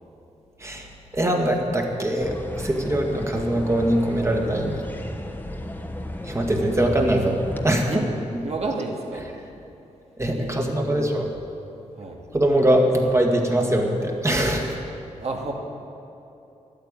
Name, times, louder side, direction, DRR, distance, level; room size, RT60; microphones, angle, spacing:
voice 1, 0.6-4.8 6.2-7.9 10.2-11.3 12.3-14.8, right 1 dB, 20° right, 1 dB, 1.9 m, -22 dB
sound 1, 2.2-7.7, left 1 dB, 15° left, 1.2 m, -34 dB
voice 2, 8.4-9.3 10.3-11.1 11.9-12.2 15.2-15.5, right 3 dB, 55° right, 0 dB, 2.2 m, -31 dB
11.5 x 8.9 x 8.9 m, 2.8 s
cardioid pair, 85°, 13 cm